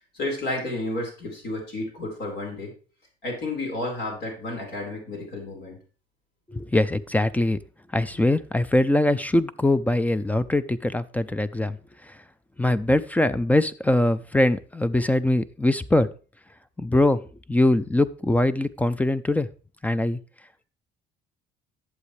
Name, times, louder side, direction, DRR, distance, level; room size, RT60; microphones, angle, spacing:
voice 1, 0.2-2.7 3.2-5.7, left 2 dB, 70° left, 0 dB, 4.6 m, -31 dB
voice 2, 6.5-7.6 7.9-11.8 12.6-16.1 16.8-17.2 17.5-19.5 19.8-20.2, left 1 dB, 10° left, 15 dB, 0.4 m, -22 dB
11.0 x 7.4 x 3.2 m, 0.36 s
cardioid pair, 110°, 17 cm